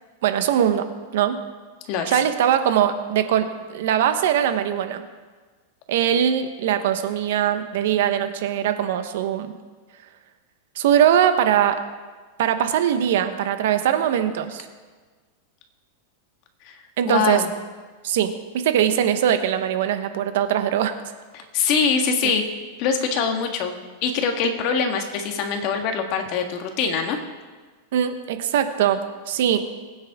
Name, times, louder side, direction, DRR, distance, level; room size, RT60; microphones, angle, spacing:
voice 1, 0.2-1.4 2.1-5.0 5.9-9.5 10.8-11.8 12.4-14.6 17.0-17.4 18.0-20.9 27.9-29.0 29.3-29.7, right 9 dB, 65° right, 9 dB, 1.1 m, -21 dB
voice 2, 1.9-2.2 16.6-16.8 17.0-17.5 21.3-22.4 22.8-23.7 24.0-27.2, left 6 dB, 40° left, 5 dB, 1.6 m, -23 dB
21.0 x 9.5 x 3.7 m, 1.4 s
supercardioid pair, 160°, 0 cm